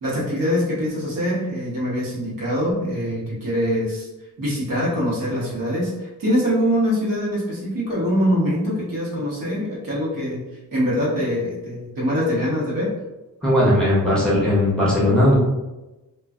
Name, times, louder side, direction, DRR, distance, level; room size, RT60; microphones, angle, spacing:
voice 1, 0.0-4.1 4.4-10.5 10.7-12.9, equal, 75° right, -6 dB, 1.1 m, -23 dB
voice 2, 13.4-15.3, left 1 dB, 5° left, -8 dB, 0.7 m, -18 dB
3.1 x 2.3 x 2.4 m, 1.0 s
wide cardioid pair, 180°, 33 cm